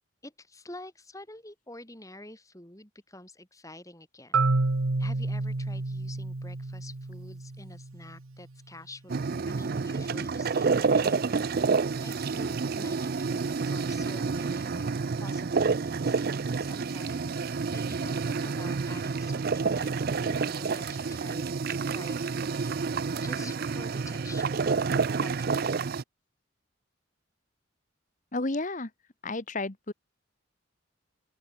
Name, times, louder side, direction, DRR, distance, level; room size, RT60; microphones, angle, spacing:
voice 1, 0.2-4.4 5.0-11.7 12.0-14.9 15.2-24.9 25.2-25.7, left 1 dB, 15° left, 5.8 m, -48 dB
Marimba xylophone, 4.3-8.2, right 3 dB, 90° right, 1.2 m, -29 dB
sound 1, 9.1-26.0, right 4 dB, 45° right, 0.4 m, -29 dB
voice 2, 28.3-28.9 29.2-29.9, left 2 dB, 40° left, 1.2 m, -31 dB
open air
head